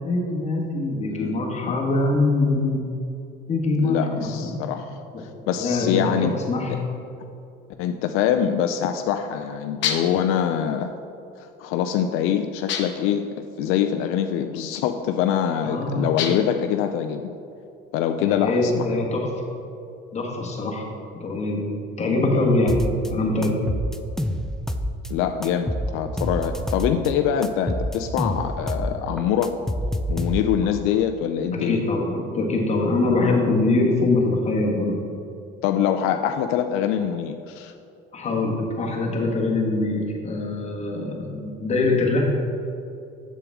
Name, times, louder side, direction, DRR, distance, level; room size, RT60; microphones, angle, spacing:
voice 1, 0.0-2.8 3.5-4.6 5.1-5.2 5.6-6.8 15.6-16.1 18.2-19.3 20.1-20.9 21.1-21.6 22.0-22.8 23.1-23.5 31.5-35.0 38.1-42.2, left 2 dB, 30° left, -1 dB, 1.5 m, -23 dB
voice 2, 1.1-1.8 3.8-4.9 5.2-6.4 6.7-6.8 7.8-10.9 11.4-17.3 17.9-18.8 25.1-29.6 30.1-31.8 35.6-37.7, left 9 dB, 80° left, 6 dB, 0.4 m, -24 dB
sound 1, 9.8-10.3 12.7-13.1 16.2-16.6, left 8 dB, 60° left, 0.8 m, -28 dB
sound 2, 22.7-23.1 23.4-25.1 25.4-27.1 27.4-28.9 29.2-30.7, equal, ahead, 0.3 m, -27 dB
7.4 x 6.9 x 3.5 m, 2.6 s
cardioid pair, 120°, 21 cm